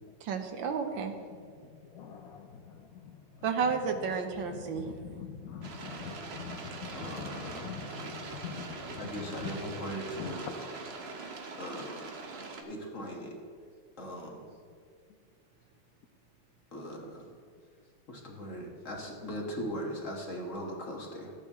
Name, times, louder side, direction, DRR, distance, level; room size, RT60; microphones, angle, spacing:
voice 1, 0.2-1.1 3.4-4.9, right 6 dB, 70° right, 6 dB, 1.5 m, -31 dB
voice 2, 1.6-3.8 4.4-9.8 10.1-10.4, left 7 dB, 70° left, 3 dB, 0.8 m, -44 dB
sound 1, 5.6-12.6, right 3 dB, 55° right, 0.7 m, -42 dB
voice 3, 6.9-7.8 9.0-10.5 11.6-12.0 12.6-13.4 14.0-14.5 16.7-17.3 18.1-21.3, equal, 40° left, 0 dB, 1.5 m, -39 dB
13.5 x 8.5 x 3.6 m, 2.2 s
omnidirectional pair, 2.3 m